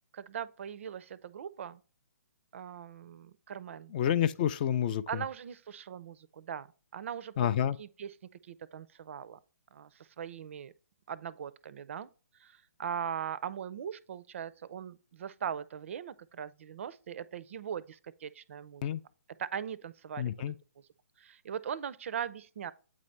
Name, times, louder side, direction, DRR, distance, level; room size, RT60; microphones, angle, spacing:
voice 1, 0.1-1.8 2.5-3.9 5.1-6.7 6.9-8.2 8.4-9.4 9.7-10.7 11.1-12.1 12.4-18.9 19.4-20.3 21.2-22.7, right 8 dB, 50° right, 0.4 m, -40 dB
voice 2, 3.9-5.0 7.4-7.8 18.8-19.0 20.2-20.5, left 10 dB, 30° left, 0.3 m, -28 dB
8.4 x 4.1 x 3.2 m
figure-of-eight pair, 130°, 9 cm